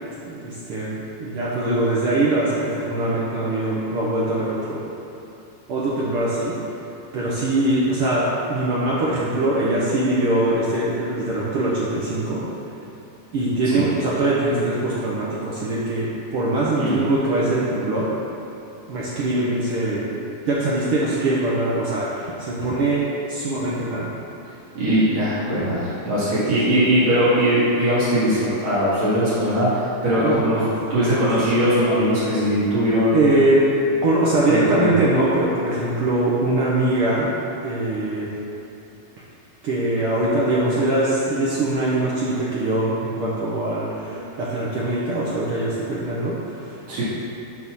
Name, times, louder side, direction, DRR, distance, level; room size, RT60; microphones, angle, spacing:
voice 1, 0.2-4.8 5.7-6.6 7.1-12.4 13.3-18.1 18.9-20.2 20.5-24.1 26.3-26.4 30.2-31.2 33.1-33.7 34.0-37.3 37.6-38.3 39.6-46.7, right 2 dB, 75° right, -7 dB, 1.2 m, -22 dB
voice 2, 24.7-30.6 30.9-33.3 34.5-34.9 46.9-47.0, equal, 60° right, -12 dB, 3.1 m, -20 dB
7.2 x 4.1 x 6.1 m, 2.9 s
omnidirectional pair, 3.6 m